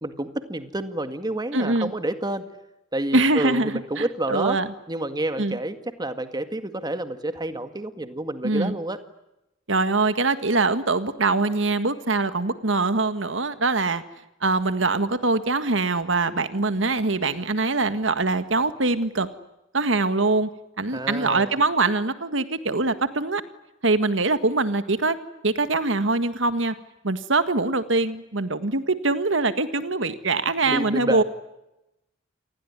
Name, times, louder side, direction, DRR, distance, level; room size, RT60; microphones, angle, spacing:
voice 1, 0.0-2.5 2.9-4.6 4.9-9.0 20.9-21.5 30.6-31.2, right 1 dB, 20° right, 9 dB, 1.9 m, -29 dB
voice 2, 1.5-1.9 3.1-4.7 5.4-5.6 8.4-8.7 9.7-14.0 14.4-19.3 19.7-20.5 20.8-23.4 23.8-25.2 25.4-26.7 27.0-31.2, right 3 dB, 70° right, 11 dB, 1.8 m, -23 dB
28.5 x 20.5 x 9.7 m, 0.91 s
head